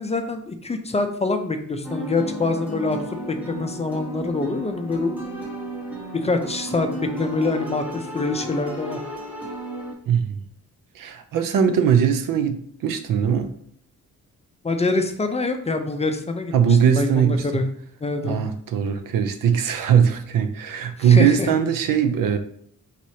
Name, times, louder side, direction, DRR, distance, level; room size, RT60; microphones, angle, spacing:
voice 1, 0.0-5.2 6.1-9.0 14.6-17.7 18.0-18.4 21.0-21.5, left 3 dB, 20° left, 0.4 m, -25 dB
sound 1, 1.8-9.9, right 1 dB, 5° right, 1.0 m, -34 dB
voice 2, 10.1-10.4 11.0-13.5 16.5-17.6 18.2-22.4, right 8 dB, 90° right, 0.6 m, -20 dB
4.7 x 4.1 x 2.8 m
wide cardioid pair, 135°, 32 cm